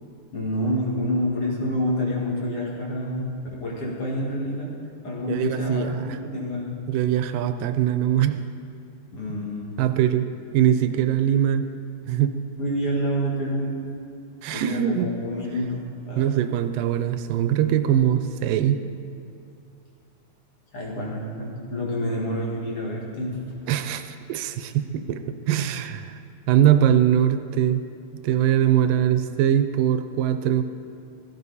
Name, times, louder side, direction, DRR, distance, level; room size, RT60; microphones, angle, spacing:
voice 1, 0.3-4.8 5.0-6.8 9.1-9.8 12.6-13.8 14.5-16.4 20.7-23.4 28.9-29.2, equal, 45° left, -4 dB, 2.5 m, -28 dB
voice 2, 5.3-6.2 6.9-8.5 9.3-9.5 9.8-10.3 10.5-11.7 12.1-12.4 14.4-15.1 16.2-18.8 23.7-26.2 26.5-27.8 28.1-30.6, right 10 dB, 80° right, 9 dB, 2.2 m, -22 dB
16.0 x 13.5 x 4.1 m, 2.6 s
omnidirectional pair, 4.0 m